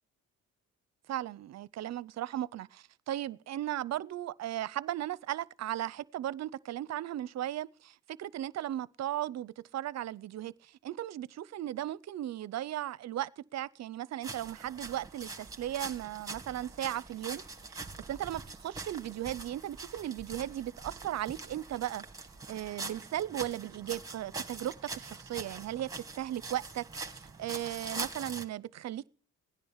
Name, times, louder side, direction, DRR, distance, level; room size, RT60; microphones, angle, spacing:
voice 1, 1.1-17.4 17.7-22.0 22.5-29.1, right 12 dB, 60° right, 0.6 m, -37 dB
sound 1, 14.2-28.4, right 3 dB, 10° right, 2.2 m, -43 dB
16.5 x 10.5 x 7.3 m
cardioid pair, 90°, 30 cm